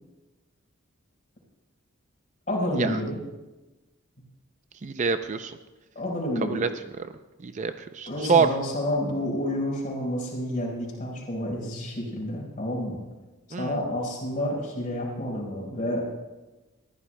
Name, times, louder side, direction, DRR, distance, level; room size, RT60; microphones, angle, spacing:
voice 1, 2.5-3.2 5.9-6.6 8.1-13.0 13.5-16.0, left 1 dB, 40° left, -3 dB, 4.6 m, -29 dB
voice 2, 4.8-5.6 6.4-6.7 7.0-7.1 7.4-8.5 13.5-13.8, right 5 dB, 35° right, 9 dB, 0.4 m, -25 dB
21.5 x 14.5 x 2.2 m, 1.1 s
head